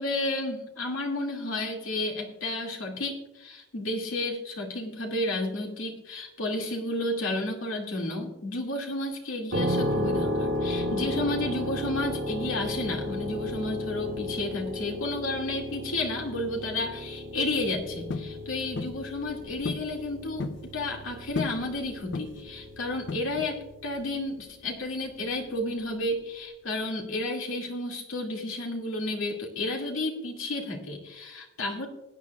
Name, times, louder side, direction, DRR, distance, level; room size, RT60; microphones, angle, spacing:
voice 1, 0.0-31.9, left 2 dB, 85° left, 1 dB, 2.2 m, -32 dB
sound 1, 9.5-24.2, left 1 dB, 80° right, 2.0 m, -34 dB
sound 2, 18.1-18.3 18.8-19.0 19.6-19.9 20.2-20.6 21.3-21.6 22.1-22.5 23.1-23.6, left 3 dB, 60° left, 0.6 m, -34 dB
20.0 x 9.3 x 2.3 m, 0.96 s
head